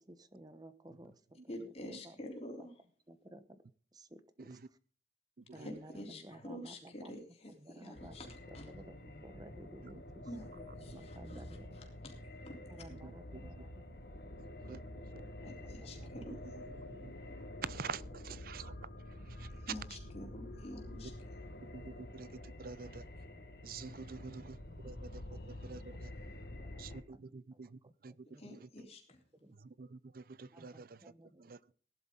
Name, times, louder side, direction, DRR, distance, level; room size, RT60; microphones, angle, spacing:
voice 1, 0.0-1.7 2.0-2.2 2.6-2.7 3.1-3.6 3.9-4.8 5.5-7.2 7.6-8.2 8.5-11.9 12.7-16.1 24.0-24.9 25.3-25.8 26.1-27.3 27.8-28.5 29.4-29.5 30.5-31.7, right 1 dB, 20° right, 12 dB, 0.9 m, -56 dB
voice 2, 1.5-2.7 5.6-8.7 10.3-10.5 10.8-11.4 11.7-12.1 12.4-12.8 15.4-16.6 17.2-17.3 19.3-21.1 28.4-29.2, left 1 dB, 35° left, 1 dB, 3.5 m, -48 dB
voice 3, 5.4-5.7 10.9-11.0 12.9-13.6 13.9-14.0 14.6-14.8 15.1-15.2 16.3-16.4 16.8-17.1 17.6-18.9 19.3-19.7 21.7-23.0 23.6-26.1 26.8-28.3 28.6-28.7 29.5-31.1 31.4-31.6, right 5 dB, 50° right, 20 dB, 0.5 m, -47 dB
sound 1, 7.9-27.0, left 1 dB, 55° left, 1.6 m, -48 dB
17.5 x 11.5 x 3.9 m, 0.41 s
head